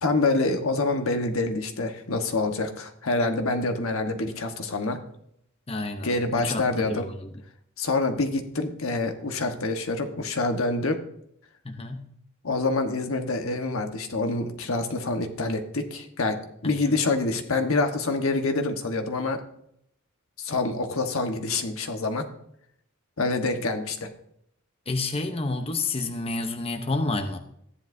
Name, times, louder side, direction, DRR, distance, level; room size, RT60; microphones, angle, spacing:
voice 1, 0.0-5.0 6.0-7.0 7.8-11.0 12.4-16.4 16.6-19.4 20.4-22.2 23.2-24.1, left 3 dB, 80° left, 5 dB, 1.2 m, -26 dB
voice 2, 5.7-6.6 6.9-7.3 11.6-12.1 16.6-16.7 24.9-27.4, left 2 dB, 30° left, 6 dB, 0.8 m, -29 dB
14.5 x 10.0 x 2.7 m, 0.73 s
head